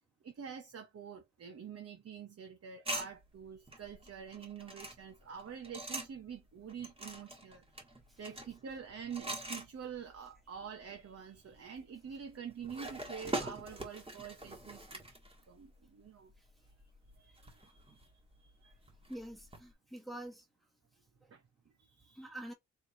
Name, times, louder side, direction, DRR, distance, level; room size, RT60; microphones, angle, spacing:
voice 1, 0.2-7.6 8.2-15.0 15.5-16.3 16.8-16.9 17.2-18.1 18.4-18.8 21.3-22.3, right 7 dB, 55° right, 1.0 m, -47 dB
letting wooden beads fall down metal bars (a baby toy), 2.8-6.3 6.7-10.4 10.7-10.8 11.5-15.9 16.3-19.7, right 2 dB, 20° right, 1.6 m, -44 dB
voice 2, 19.1-20.4 21.2-21.3 22.2-22.5, right 1 dB, ahead, 1.5 m, -46 dB
4.5 x 3.3 x 2.7 m
wide cardioid pair, 120°, 29 cm